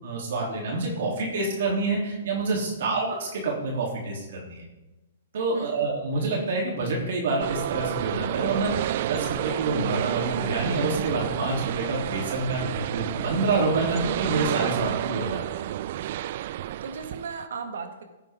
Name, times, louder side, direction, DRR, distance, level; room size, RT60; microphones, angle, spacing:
voice 1, 0.0-4.6 5.3-15.6, right 3 dB, 65° right, -2 dB, 3.3 m, -27 dB
voice 2, 5.5-5.9 13.9-14.3 15.9-16.1 16.8-18.0, right 5 dB, 85° right, 5 dB, 1.8 m, -37 dB
sound 1, 7.4-17.4, right 13 dB, 45° right, 0.3 m, -30 dB
16.5 x 9.0 x 3.8 m, 1.1 s
hypercardioid pair, 160°, 0 cm